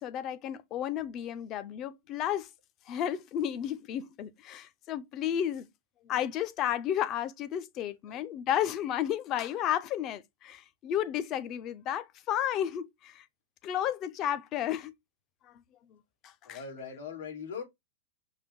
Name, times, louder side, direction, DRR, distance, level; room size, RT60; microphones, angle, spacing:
voice 1, 0.0-2.5 2.9-5.7 6.0-13.3 13.6-14.9 15.4-15.5 16.2-16.6, left 10 dB, 30° left, 0.5 m, -32 dB
voice 2, 16.4-17.6, left 6 dB, 80° left, 2.6 m, -40 dB
5.5 x 2.5 x 3.5 m
supercardioid pair, 170°, 0 cm